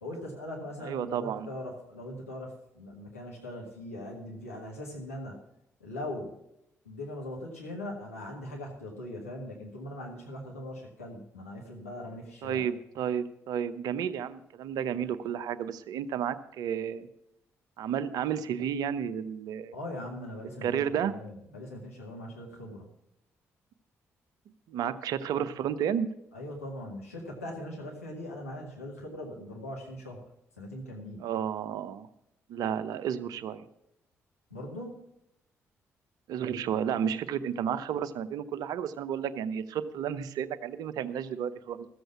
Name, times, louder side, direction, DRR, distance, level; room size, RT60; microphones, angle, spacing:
voice 1, 0.0-5.4 5.8-6.4 6.8-12.6 19.7-22.9 26.3-30.2 30.6-31.2 34.5-35.0, left 1 dB, 85° left, -2 dB, 1.7 m, -40 dB
voice 2, 0.8-1.5 12.4-17.1 17.8-19.7 20.6-21.1 24.7-26.1 31.2-32.1 32.5-33.7 36.3-41.9, right 8 dB, 60° right, 12 dB, 0.7 m, -32 dB
14.0 x 7.9 x 5.9 m, 0.81 s
figure-of-eight pair, 40°, 7 cm